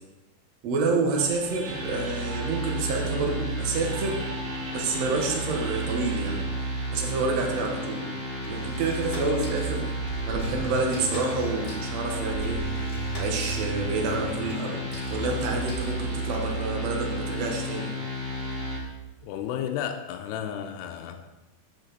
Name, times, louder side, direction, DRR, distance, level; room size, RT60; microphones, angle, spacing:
voice 1, 0.6-4.2 4.7-6.4 6.9-8.1 8.5-9.9 10.3-12.6 13.2-14.8 15.1-17.9, right 3 dB, 55° right, 1 dB, 2.2 m, -28 dB
sound 1, 1.2-8.2, right 3 dB, 70° right, 3.4 m, -42 dB
sound 2, 1.6-18.8, right 1 dB, 30° right, 1.9 m, -32 dB
sound 3, 8.4-16.4, equal, 20° left, 0.9 m, -38 dB
voice 2, 19.2-21.3, left 9 dB, 90° left, 6 dB, 2.8 m, -33 dB
14.0 x 7.4 x 4.2 m, 1.1 s
omnidirectional pair, 4.7 m